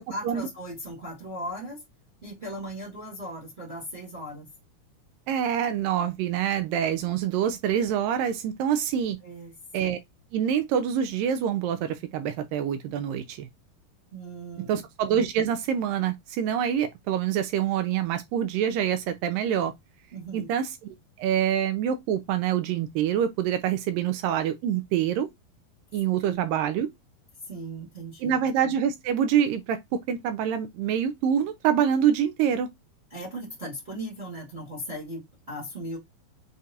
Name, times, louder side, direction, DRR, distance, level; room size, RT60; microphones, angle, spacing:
voice 1, 0.0-1.8 2.2-4.5 9.2-9.5 14.1-14.8 20.1-20.5 26.2-26.4 27.4-28.3 33.1-36.0, right 1 dB, 40° right, 0.8 m, -38 dB
voice 2, 5.3-9.2 9.7-10.0 10.3-13.5 14.7-19.7 20.3-20.7 21.2-25.3 25.9-26.9 28.2-32.7, right 9 dB, 80° right, 2.0 m, -26 dB
6.7 x 2.5 x 2.7 m
omnidirectional pair, 4.5 m